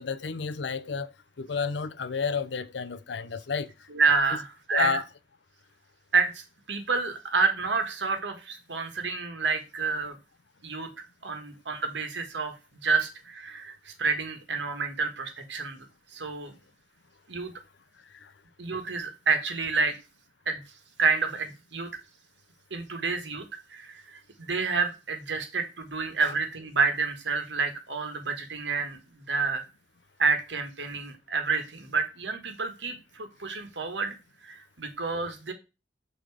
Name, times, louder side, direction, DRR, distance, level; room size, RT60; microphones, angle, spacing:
voice 1, 0.0-3.9 4.7-5.0 18.1-18.3 26.2-26.3, left 5 dB, 75° left, 0.6 m, -31 dB
voice 2, 3.9-5.0 6.1-10.2 10.6-10.9 11.2-12.5 12.8-15.9 16.1-16.5 17.3-17.5 18.6-19.9 20.4-20.6 21.0-21.9 22.7-29.6 30.2-34.1 34.4-35.5, right 4 dB, 80° right, 1.5 m, -29 dB
6.8 x 4.0 x 4.7 m
head